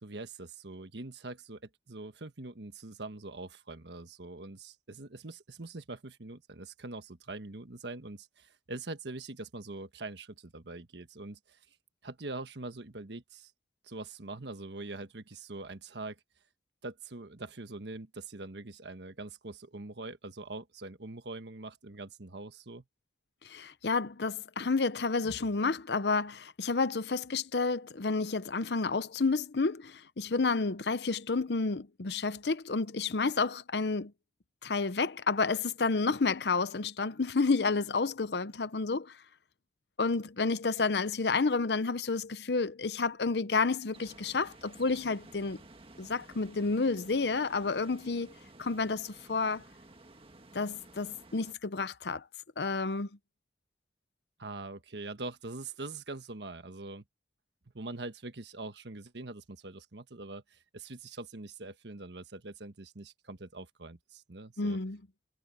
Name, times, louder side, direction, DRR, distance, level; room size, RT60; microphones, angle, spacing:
voice 1, 0.0-11.6 12.0-13.5 13.8-16.2 16.8-22.8 54.4-57.0 57.7-64.8, right 2 dB, 75° right, 1.4 m, -43 dB
voice 2, 23.4-34.1 34.6-39.1 40.0-45.6 46.0-48.3 48.6-49.6 50.5-52.2 52.6-53.1 64.6-65.0, left 4 dB, 70° left, 0.8 m, -30 dB
sound 1, 43.9-51.5, right 2 dB, 30° right, 1.7 m, -54 dB
head